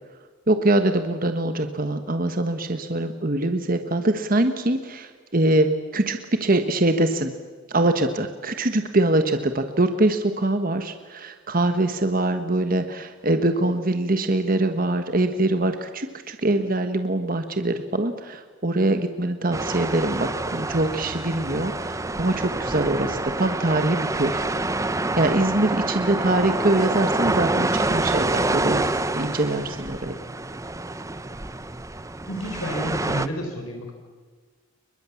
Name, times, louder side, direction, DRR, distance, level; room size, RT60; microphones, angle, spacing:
voice 1, 0.5-7.3 7.7-24.5 25.2-28.9 29.1-30.2, right 2 dB, 40° right, 8 dB, 1.3 m, -23 dB
sound 1, 19.5-33.3, right 2 dB, 15° right, 0.8 m, -27 dB
voice 2, 32.3-33.9, equal, 80° left, 3 dB, 4.2 m, -30 dB
29.5 x 23.0 x 7.1 m, 1.5 s
head